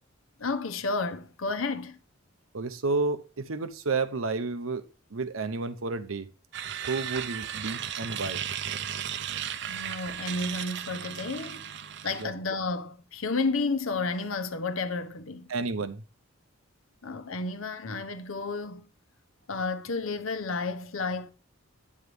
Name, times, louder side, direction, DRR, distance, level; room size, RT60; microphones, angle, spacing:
voice 1, 0.4-2.0 9.7-11.6 12.0-15.5 17.0-18.9 19.5-21.3, left 3 dB, 85° left, 1.0 m, -31 dB
voice 2, 2.5-4.8 5.1-6.3 6.9-8.4 12.2-12.3 15.5-16.0, right 3 dB, 85° right, 0.8 m, -31 dB
sound 1, 6.5-12.2, right 9 dB, 55° right, 0.6 m, -35 dB
9.3 x 7.4 x 3.3 m
head